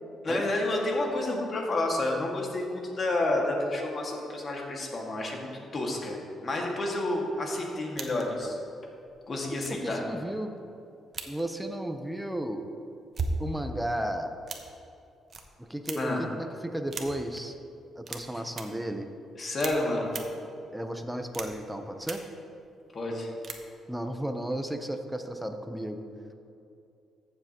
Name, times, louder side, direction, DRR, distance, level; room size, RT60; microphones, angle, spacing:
voice 1, 0.2-8.6 9.3-10.0 16.0-16.2 18.3-18.4 19.4-20.1 22.9-23.3, left 2 dB, 40° left, -1 dB, 1.9 m, -30 dB
sound 1, 8.0-8.4 9.1-9.2 9.6-9.9 11.1-11.4 12.9-13.5 14.5-14.8 15.3-15.4 15.9-16.2 16.9-17.4 18.0-18.2 18.5-18.6 19.6-19.7 20.1-20.2 21.3-21.7 22.0-22.1 23.4-23.6, right 3 dB, 45° right, 0.9 m, -35 dB
voice 2, 9.5-10.5 11.3-12.6 13.4-14.3 15.6-17.6 18.0-19.1 20.7-22.2 23.9-26.0, right 1 dB, 5° right, 6 dB, 0.7 m, -34 dB
14.0 x 7.3 x 3.0 m, 2.6 s
cardioid pair, 90°, 0 cm